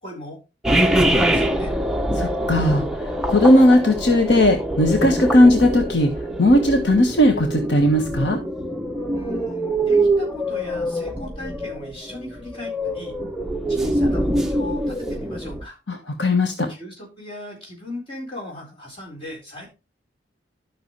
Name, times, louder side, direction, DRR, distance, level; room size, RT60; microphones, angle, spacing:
voice 1, 0.0-0.4 0.8-1.7 9.1-13.2 13.7-15.8 16.7-19.7, left 1 dB, 30° left, -2 dB, 4.3 m, -37 dB
sound 1, 0.6-15.6, right 1 dB, 5° right, 0.6 m, -24 dB
voice 2, 2.2-6.1 6.4-8.4 15.9-16.7, left 1 dB, 75° left, 4 dB, 1.5 m, -17 dB
12.5 x 6.1 x 3.2 m, 0.28 s
head